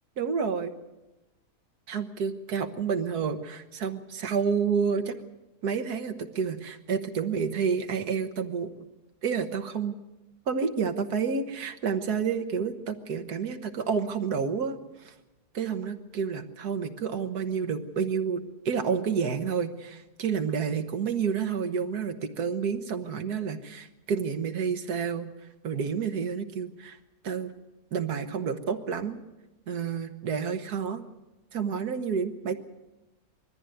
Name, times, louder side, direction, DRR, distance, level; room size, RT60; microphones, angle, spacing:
voice 1, 0.2-0.7 1.9-5.2 5.6-8.7 9.2-10.0 10.5-15.1 15.5-25.3 25.6-27.0 27.2-27.5 27.9-29.2 29.7-31.0 31.5-32.6, right 6 dB, 80° right, 7 dB, 1.8 m, -29 dB
21.5 x 14.0 x 9.2 m, 1.1 s
omnidirectional pair, 1.6 m